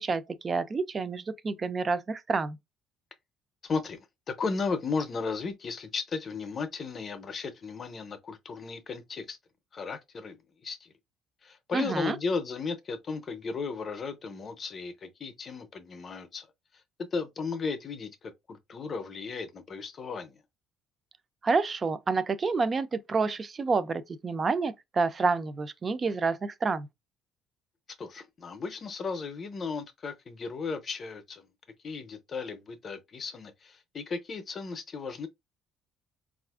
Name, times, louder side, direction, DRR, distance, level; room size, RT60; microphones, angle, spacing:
voice 1, 0.0-2.6 11.7-12.2 21.4-26.9, right 4 dB, 25° right, 0.3 m, -28 dB
voice 2, 3.6-4.0 4.3-9.4 9.7-10.4 10.6-10.9 11.4-16.5 17.1-20.4 28.0-31.5 31.8-35.3, left 4 dB, 35° left, 0.6 m, -35 dB
4.0 x 2.4 x 2.3 m
cardioid pair, 140°, 0 cm